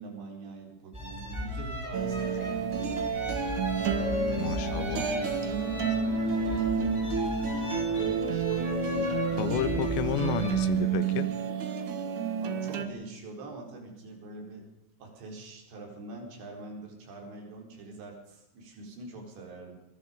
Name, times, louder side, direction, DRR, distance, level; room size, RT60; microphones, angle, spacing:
voice 1, 0.0-3.1 3.4-5.3 5.6-10.0 12.4-14.7 15.0-19.8, right 2 dB, 70° right, 6.7 m, -45 dB
sound 1, 0.9-10.6, equal, 5° right, 5.2 m, -35 dB
sound 2, 1.9-12.8, right 6 dB, 55° right, 2.5 m, -30 dB
voice 2, 4.4-5.1 9.4-11.3, left 10 dB, 80° left, 3.3 m, -31 dB
23.0 x 22.0 x 5.3 m
omnidirectional pair, 5.3 m